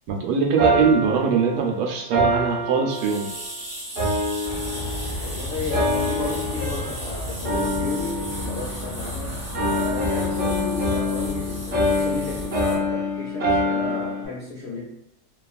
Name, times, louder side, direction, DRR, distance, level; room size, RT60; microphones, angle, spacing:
voice 1, 0.1-3.3, right 5 dB, 80° right, 2 dB, 1.2 m, -22 dB
sound 1, 0.6-3.5 4.0-5.3 5.7-7.1 7.4-9.2 9.5-14.3, left 1 dB, 55° right, 0.8 m, -26 dB
sound 2, 2.9-12.7, right 1 dB, 25° right, 1.1 m, -38 dB
sound 3, 4.4-12.5, left 1 dB, 20° left, 0.4 m, -34 dB
voice 2, 5.2-14.8, left 3 dB, 80° left, -4 dB, 0.6 m, -33 dB
2.9 x 2.3 x 2.4 m, 0.84 s
omnidirectional pair, 1.8 m